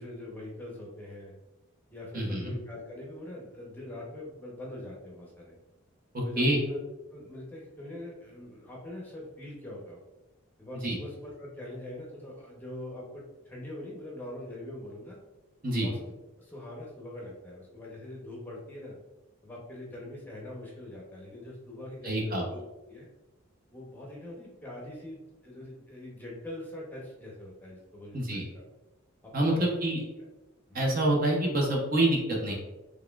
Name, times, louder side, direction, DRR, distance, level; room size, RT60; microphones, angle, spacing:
voice 1, 0.0-1.3 1.9-5.6 6.2-6.8 7.1-10.0 10.6-15.2 15.8-16.1 16.4-19.0 19.4-22.6 22.9-23.1 23.7-28.6 29.2-29.6 30.7-30.9, left 1 dB, 10° left, -3 dB, 0.7 m, -43 dB
voice 2, 2.1-2.5 6.1-6.6 10.8-11.0 15.6-15.9 22.0-22.4 28.1-28.4 29.3-30.0 30.7-32.5, right 1 dB, 45° right, -1 dB, 0.7 m, -27 dB
4.0 x 3.3 x 2.3 m, 1.1 s
head